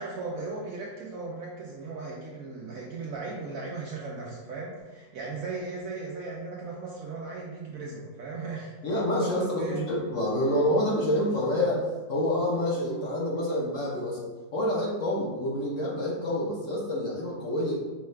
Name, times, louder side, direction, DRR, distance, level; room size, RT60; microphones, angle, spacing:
voice 1, 0.0-9.8, right 3 dB, 70° right, -2 dB, 0.9 m, -37 dB
voice 2, 8.8-11.8 12.1-14.2 14.5-17.8, left 1 dB, 55° left, -5 dB, 1.1 m, -27 dB
5.4 x 2.3 x 3.1 m, 1.2 s
omnidirectional pair, 1.9 m